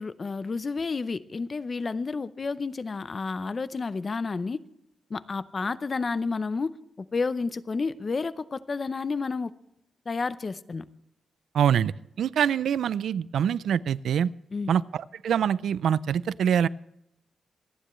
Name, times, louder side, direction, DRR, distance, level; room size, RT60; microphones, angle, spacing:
voice 1, 0.0-4.6 5.1-6.8 7.1-9.5 10.1-10.9 14.5-14.7, left 4 dB, 30° left, 0.6 m, -30 dB
voice 2, 11.5-11.9 12.2-14.3 14.7-16.7, right 8 dB, 75° right, 0.4 m, -24 dB
26.5 x 10.0 x 3.1 m
wide cardioid pair, 145°, 0 cm